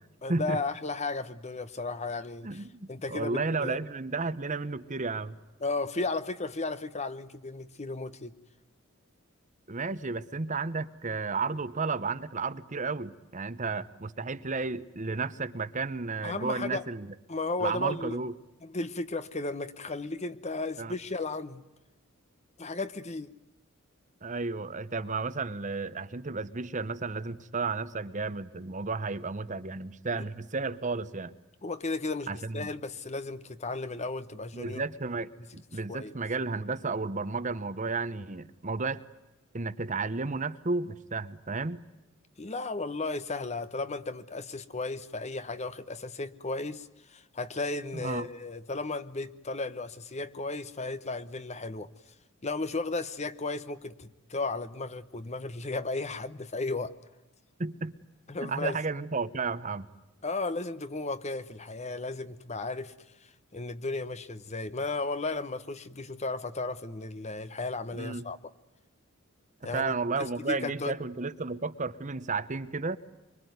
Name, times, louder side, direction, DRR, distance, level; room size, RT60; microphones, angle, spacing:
voice 1, 0.2-3.8 5.6-8.4 16.2-16.8 17.3-18.2 18.6-21.6 22.6-23.3 30.1-30.2 31.6-34.8 35.9-36.1 42.4-51.9 52.4-57.0 58.3-58.8 60.2-62.9 63.2-68.4 69.6-69.9 70.2-71.0, left 3 dB, 30° left, 13 dB, 1.0 m, -34 dB
voice 2, 2.4-5.4 9.7-17.1 17.6-18.3 20.8-20.9 24.2-31.3 32.3-32.7 34.5-39.0 39.5-41.8 47.9-48.3 57.6-57.9 58.4-59.9 68.0-68.2 69.6-73.0, right 4 dB, 35° right, 13 dB, 0.9 m, -33 dB
24.5 x 24.5 x 9.4 m, 1.0 s
head